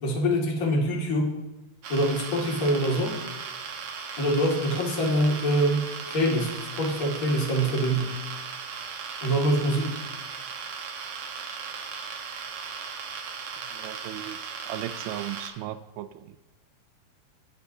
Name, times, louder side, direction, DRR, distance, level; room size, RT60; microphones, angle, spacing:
voice 1, 0.0-1.3 1.9-3.2 4.2-8.1 9.2-10.0, equal, 30° left, -2 dB, 1.7 m, -25 dB
sound 1, 1.8-15.5, right 6 dB, 65° right, 2.0 m, -37 dB
voice 2, 13.7-14.4 14.7-16.4, right 12 dB, 80° right, 12 dB, 2.4 m, -36 dB
24.5 x 9.4 x 2.8 m, 1.1 s
omnidirectional pair, 4.7 m